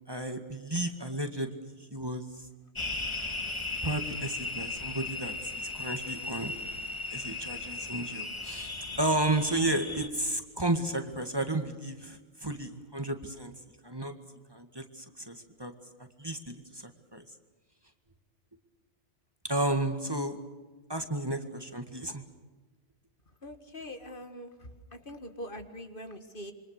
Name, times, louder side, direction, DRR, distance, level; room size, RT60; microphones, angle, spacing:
voice 1, 0.1-2.2 3.8-6.5 7.1-13.5 13.8-14.1 14.5-15.7 16.2-17.2 19.4-20.4 20.9-22.2, right 1 dB, 20° right, 6 dB, 2.0 m, -33 dB
sound 1, 2.7-10.1, left 3 dB, 25° left, 2.0 m, -37 dB
voice 2, 23.4-26.5, left 1 dB, 50° left, 7 dB, 2.0 m, -43 dB
27.0 x 24.5 x 6.7 m, 1.3 s
omnidirectional pair, 1.1 m